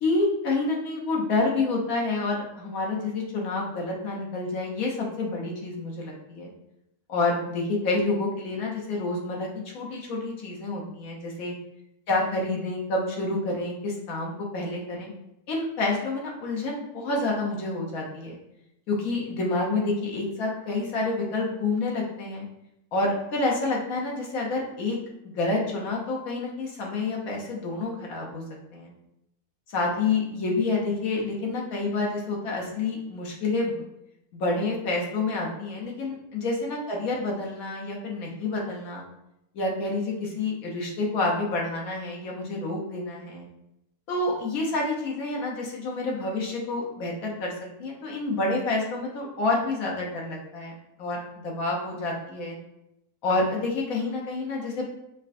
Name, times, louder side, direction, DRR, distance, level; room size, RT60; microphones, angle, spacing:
voice 1, 0.0-6.5 7.1-9.5 9.7-11.5 12.1-15.1 15.5-18.4 18.9-22.4 22.9-25.0 25.4-28.4 28.7-28.9 29.7-33.8 34.3-39.0 39.5-43.5 44.1-47.5 47.8-50.7 51.0-52.6 53.2-54.9, left 2 dB, 70° left, -2 dB, 1.2 m, -28 dB
4.9 x 2.2 x 2.5 m, 0.84 s
omnidirectional pair, 1.6 m